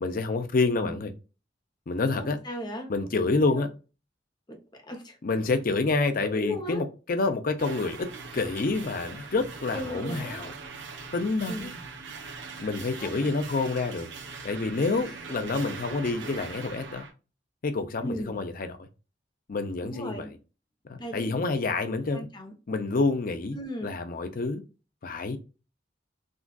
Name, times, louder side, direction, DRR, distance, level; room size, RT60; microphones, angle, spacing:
voice 1, 0.0-1.1 1.9-2.4 2.9-3.7 5.2-8.1 8.3-10.5 11.1-11.7 12.6-14.1 14.4-17.1 17.6-18.9 19.5-20.2 20.9-22.3 22.7-23.6 23.8-24.6 25.0-25.4, left 3 dB, 50° left, 0.5 m, -28 dB
voice 2, 2.1-2.9 3.5-3.6 4.5-5.2 6.2-6.8 9.7-10.5 11.5-11.8 13.0-13.3 15.1-15.2 16.2-16.5 18.0-18.4 19.8-20.3 21.0-21.4 21.8-22.5 23.5-24.0, left 1 dB, 25° left, 0.8 m, -37 dB
sound 1, 7.6-17.1, right 4 dB, 75° right, 0.7 m, -41 dB
3.7 x 2.3 x 2.3 m
head